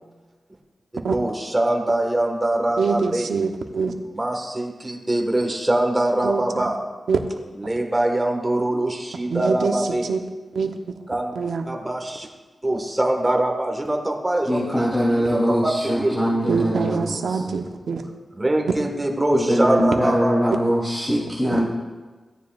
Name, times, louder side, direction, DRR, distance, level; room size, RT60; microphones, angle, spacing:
voice 1, 0.9-3.3 4.0-6.8 7.5-10.1 11.1-11.3 11.6-12.3 12.6-16.2 18.4-20.7 21.5-21.6, right 1 dB, 20° right, 3 dB, 1.5 m, -23 dB
voice 2, 2.8-3.9 6.2-6.4 7.1-7.2 9.3-9.7 10.1-10.2 10.5-10.8 11.4-11.6 16.5-18.0, right 5 dB, 90° right, 5 dB, 0.8 m, -24 dB
voice 3, 14.5-17.4 19.3-21.6, equal, 10° left, -8 dB, 2.9 m, -22 dB
16.0 x 9.6 x 2.4 m, 1.3 s
wide cardioid pair, 85°, 0 cm